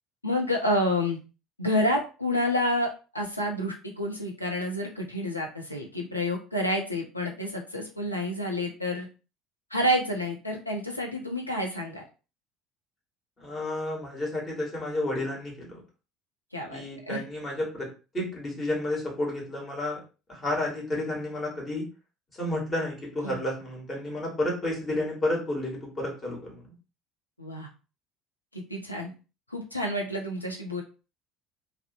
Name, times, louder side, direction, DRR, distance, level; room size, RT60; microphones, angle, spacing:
voice 1, 0.2-1.2 1.6-9.1 9.7-12.0 16.5-17.2 23.2-23.4 27.4-27.7 28.5-29.1 29.5-30.8, left 1 dB, 85° left, 0 dB, 0.5 m, -29 dB
voice 2, 13.4-15.8 16.7-17.9 18.1-20.0 20.3-21.9 22.4-26.7, left 1 dB, 25° left, -2 dB, 1.2 m, -31 dB
2.6 x 2.0 x 2.7 m, 0.33 s
figure-of-eight pair, 60°, 0 cm